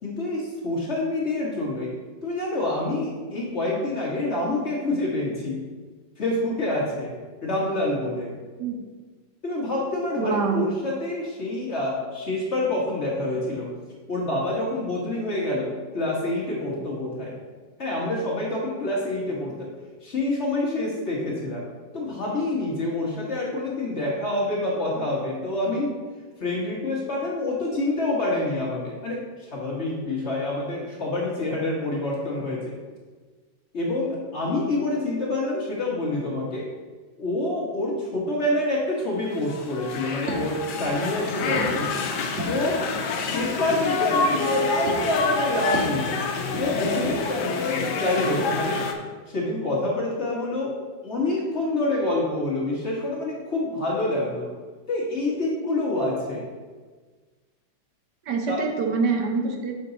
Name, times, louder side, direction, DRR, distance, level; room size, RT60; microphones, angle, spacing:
voice 1, 0.0-1.9 2.2-5.6 6.2-7.1 7.4-8.3 9.4-13.7 14.1-17.3 17.8-19.7 20.0-21.6 21.9-26.0 26.4-32.7 33.7-36.7 37.2-41.9 42.4-46.1 46.6-48.8 49.3-50.7 51.0-54.5 54.9-56.5 58.5-58.6, left 2 dB, 40° left, -4 dB, 1.6 m, -27 dB
voice 2, 10.2-10.7 58.3-59.7, right 4 dB, 70° right, 3 dB, 1.3 m, -25 dB
sound 1, 39.3-48.9, left 4 dB, 75° left, 1.3 m, -27 dB
sound 2, 40.2-48.9, right 2 dB, 40° right, 1.4 m, -38 dB
6.8 x 5.3 x 3.9 m, 1.4 s
omnidirectional pair, 1.9 m